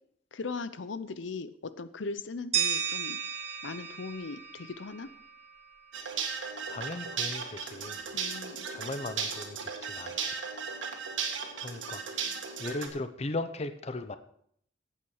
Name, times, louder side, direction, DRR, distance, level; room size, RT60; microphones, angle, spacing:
voice 1, 0.3-3.2 3.6-5.1 8.1-8.7, left 4 dB, 75° left, 14 dB, 0.7 m, -39 dB
sound 1, 2.5-5.5, right 8 dB, 30° right, 1.9 m, -33 dB
sound 2, 5.9-12.9, right 6 dB, 75° right, 2.0 m, -36 dB
voice 2, 6.7-8.0 8.7-10.5 11.6-12.3 12.6-14.2, left 2 dB, 30° left, 10 dB, 0.6 m, -38 dB
15.0 x 8.9 x 4.8 m, 0.68 s
head